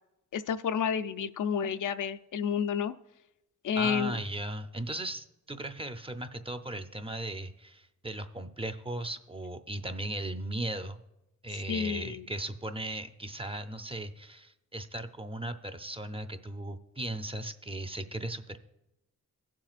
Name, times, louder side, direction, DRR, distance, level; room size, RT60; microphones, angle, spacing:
voice 1, 0.3-2.9 3.6-4.1 11.7-12.2, left 7 dB, 75° left, 11 dB, 0.5 m, -30 dB
voice 2, 3.8-11.0 11.4-18.6, right 1 dB, 20° right, 8 dB, 0.6 m, -37 dB
17.0 x 7.5 x 2.5 m, 0.90 s
cardioid pair, 85°, 31 cm